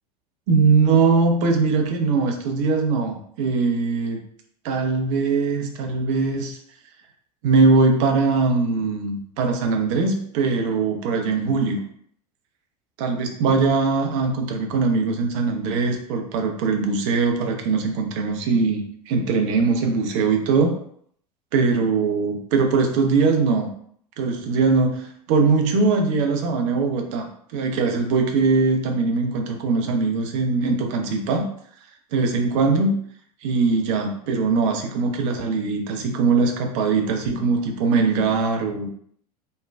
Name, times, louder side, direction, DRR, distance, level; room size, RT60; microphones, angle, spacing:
voice 1, 0.5-4.2 4.6-6.6 7.4-11.8 13.0-20.8 21.5-23.7 24.2-31.5 32.1-33.0 33.4-38.9, right 4 dB, 50° right, 4 dB, 0.5 m, -21 dB
3.1 x 2.2 x 2.2 m, 0.63 s
figure-of-eight pair, 80°, 20 cm